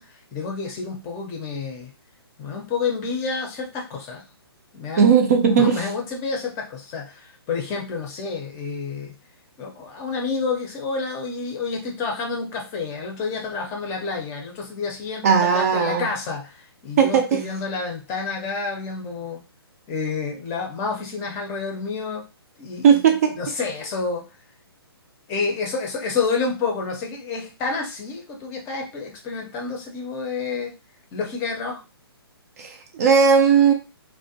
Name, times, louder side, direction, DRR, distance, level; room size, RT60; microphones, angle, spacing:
voice 1, 0.0-1.9 2.4-4.2 4.7-5.1 5.4-9.1 9.6-19.4 19.9-22.2 22.6-24.3 25.3-30.7 31.1-31.8, left 4 dB, 20° left, 0.6 m, -29 dB
voice 2, 5.0-5.8 15.2-16.1 17.0-17.4 22.8-23.4 32.6-33.7, right 6 dB, 35° right, 0.4 m, -17 dB
2.4 x 2.1 x 2.7 m
hypercardioid pair, 140°, 13 cm